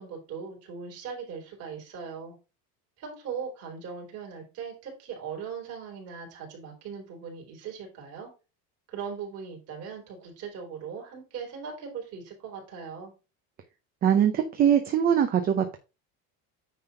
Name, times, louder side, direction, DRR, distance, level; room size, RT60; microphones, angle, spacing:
voice 1, 0.0-2.3 3.0-8.3 8.9-13.1, right 6 dB, 40° right, 0 dB, 3.9 m, -39 dB
voice 2, 14.0-15.8, right 9 dB, 25° right, 7 dB, 0.7 m, -22 dB
9.4 x 3.5 x 5.6 m, 0.30 s
cardioid pair, 175°, 35 cm